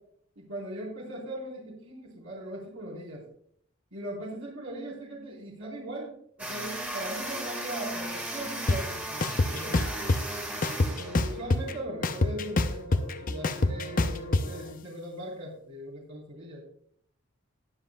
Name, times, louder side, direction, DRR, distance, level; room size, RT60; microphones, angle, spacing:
voice 1, 0.4-3.2 3.9-9.8 10.9-16.6, right 1 dB, 75° right, -4 dB, 4.2 m, -39 dB
sound 1, 6.4-11.6, right 1 dB, 5° right, 1.9 m, -36 dB
sound 2, 8.7-8.8 9.2-10.2 10.6-11.7 12.0-14.4, left 2 dB, 40° left, 0.6 m, -25 dB
sound 3, 9.4-14.8, equal, 75° left, 3.7 m, -44 dB
20.0 x 7.5 x 2.3 m, 0.66 s
head